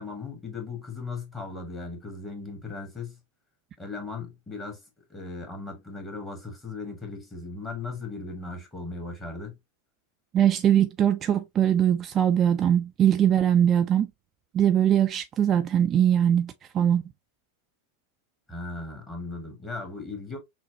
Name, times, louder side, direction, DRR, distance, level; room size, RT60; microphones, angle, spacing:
voice 1, 0.0-3.2 3.8-4.8 5.1-9.6 18.5-20.4, left 3 dB, 15° left, 1.6 m, -37 dB
voice 2, 10.3-14.1 14.5-17.0, right 10 dB, 30° right, 0.3 m, -21 dB
6.0 x 2.1 x 2.7 m
figure-of-eight pair, 90°, 0 cm